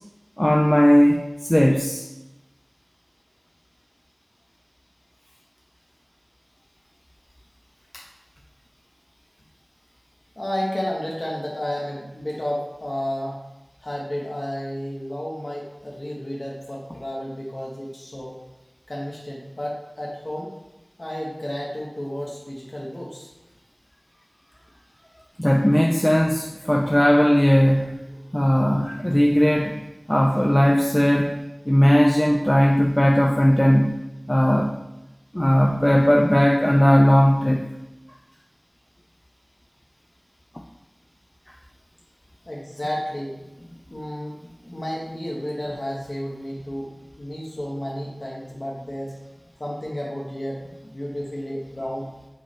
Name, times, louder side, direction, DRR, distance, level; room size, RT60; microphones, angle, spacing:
voice 1, 0.4-2.0 25.4-28.0 28.3-29.8 30.1-31.3 31.7-34.0 34.3-34.7 35.3-37.6, equal, 20° left, 0 dB, 0.5 m, -18 dB
voice 2, 10.4-13.4 13.8-18.3 18.9-20.5 21.0-23.3 42.5-43.4 43.9-44.4 44.7-46.9 47.2-49.2 49.6-52.1, equal, 60° left, -4 dB, 1.2 m, -31 dB
7.9 x 3.3 x 4.3 m, 0.97 s
wide cardioid pair, 45°, 0 cm